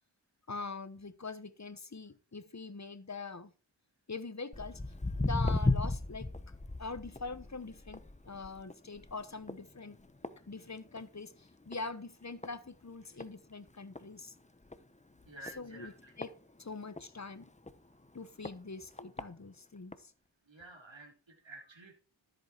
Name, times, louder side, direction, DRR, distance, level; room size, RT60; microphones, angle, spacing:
voice 1, 0.5-3.5 4.1-4.8 5.2-6.5 6.8-10.0 10.5-14.3 15.6-15.9 16.2-16.3 16.6-17.5 18.1-20.1, left 3 dB, 35° left, 14 dB, 1.1 m, -43 dB
Walk footsteps, 4.5-11.2 11.5-11.9 12.4-12.5 13.2-13.3 13.7-13.8 13.9-14.0 14.6-14.8 15.5-17.0 17.6-17.7 18.4-18.5 19.0-19.2 19.9-20.0, left 2 dB, 15° left, 1.0 m, -35 dB
voice 2, 15.3-16.1 20.5-21.9, right 2 dB, 80° right, 0 dB, 3.4 m, -51 dB
13.5 x 8.1 x 4.5 m, 0.36 s
wide cardioid pair, 50°, 45 cm